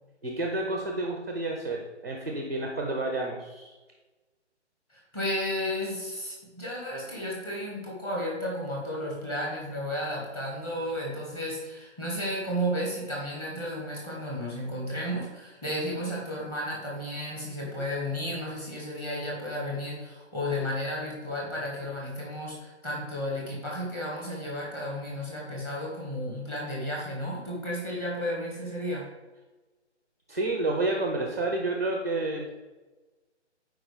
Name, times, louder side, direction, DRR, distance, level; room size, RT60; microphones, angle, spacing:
voice 1, 0.2-3.7 30.3-32.5, right 2 dB, 15° right, 1 dB, 0.5 m, -30 dB
voice 2, 4.9-29.1, equal, 15° left, -4 dB, 1.7 m, -33 dB
11.5 x 4.9 x 3.5 m, 1.2 s
hypercardioid pair, 160°, 35 cm